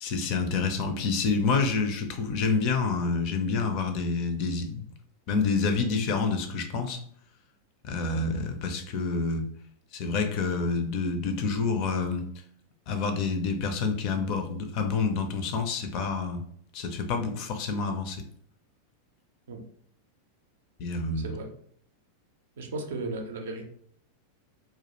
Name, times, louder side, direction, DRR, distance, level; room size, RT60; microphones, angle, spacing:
voice 1, 0.0-4.8 5.3-7.0 7.8-9.5 9.9-12.3 12.9-16.4 16.7-18.2 20.8-21.3, left 4 dB, 40° left, 6 dB, 0.4 m, -28 dB
voice 2, 21.2-21.5 22.6-23.7, right 2 dB, 60° right, 3 dB, 0.5 m, -35 dB
2.3 x 2.0 x 2.8 m, 0.63 s
figure-of-eight pair, 90°, 0 cm